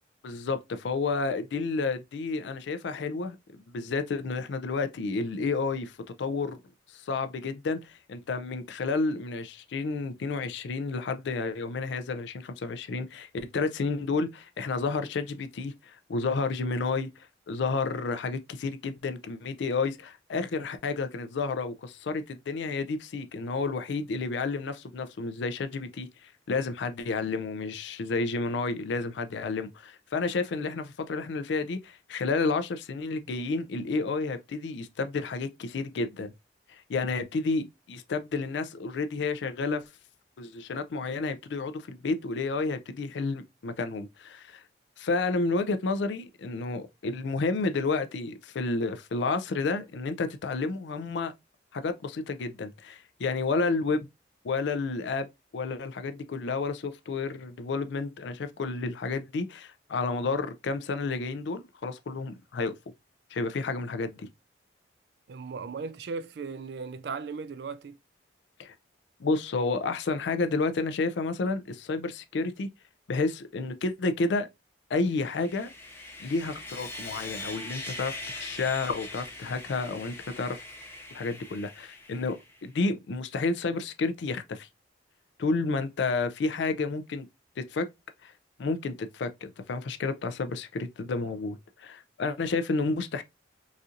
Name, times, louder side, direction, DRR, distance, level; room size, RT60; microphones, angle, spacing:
voice 1, 0.2-6.6 6.9-17.1 17.5-36.3 36.7-39.8 40.4-44.6 45.0-51.3 51.7-54.1 54.4-55.3 55.5-62.7 63.3-64.3 68.6-68.7 69.2-72.7 73.1-74.5 74.9-75.7 76.2-80.6 81.1-84.7 85.4-87.3 87.6-87.9 88.2-88.3 88.6-93.2, left 3 dB, 70° left, 0.4 m, -31 dB
voice 2, 65.3-68.0, right 5 dB, 60° right, 0.3 m, -37 dB
Sawing, 75.1-82.6, left 2 dB, 10° left, 0.5 m, -42 dB
4.1 x 2.5 x 2.5 m
head